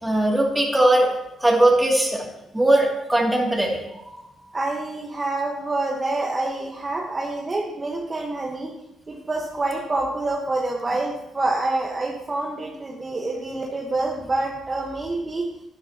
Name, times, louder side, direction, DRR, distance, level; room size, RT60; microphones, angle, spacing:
voice 1, 0.0-1.1 1.4-2.3 2.5-3.8, right 1 dB, 10° right, -1 dB, 2.7 m, -19 dB
voice 2, 4.5-8.7 9.1-15.5, right 2 dB, 25° right, -2 dB, 1.4 m, -27 dB
12.0 x 11.0 x 3.0 m, 0.89 s
cardioid pair, 90°, 0 cm